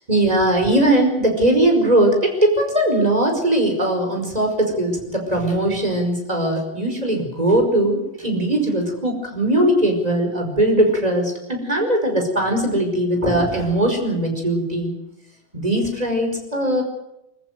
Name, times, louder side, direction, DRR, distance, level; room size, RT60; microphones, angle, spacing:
voice 1, 0.0-14.9 15.5-16.8, right 1 dB, 35° right, 3 dB, 5.4 m, -20 dB
25.5 x 14.5 x 9.2 m, 0.90 s
omnidirectional pair, 1.2 m